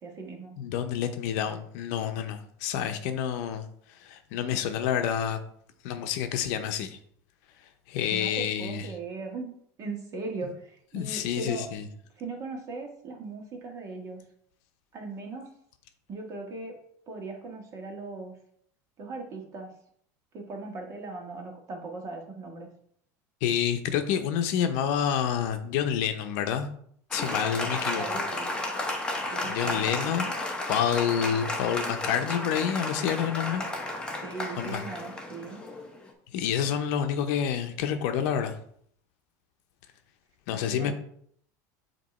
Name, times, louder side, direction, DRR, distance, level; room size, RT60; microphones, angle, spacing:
voice 1, 0.0-0.5 8.1-9.5 9.8-11.7 12.1-14.2 14.9-15.5 16.1-16.8 17.1-18.3 19.0-19.7 20.3-22.7 27.9-28.5 29.2-29.9 34.2-35.6 40.5-40.9, right 3 dB, 35° right, 1.6 m, -38 dB
voice 2, 0.6-5.4 5.8-7.0 7.9-8.9 10.9-11.8 23.4-26.7 27.1-28.0 29.4-30.3 30.7-33.7 34.6-34.8 36.3-38.6 40.5-40.9, left 9 dB, 70° left, 0.7 m, -28 dB
Applause, 27.1-36.1, left 2 dB, 10° left, 1.1 m, -33 dB
7.4 x 3.0 x 4.2 m
supercardioid pair, 130°, 9 cm